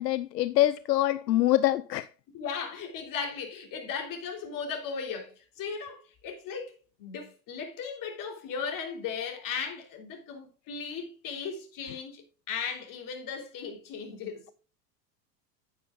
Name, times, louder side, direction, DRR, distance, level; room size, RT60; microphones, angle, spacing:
voice 1, 0.0-2.1 11.9-12.0, left 14 dB, 80° left, 0.6 m, -25 dB
voice 2, 2.3-6.7 7.0-14.4, left 6 dB, 40° left, 3.6 m, -37 dB
9.7 x 9.4 x 2.5 m
hypercardioid pair, 95°, 49 cm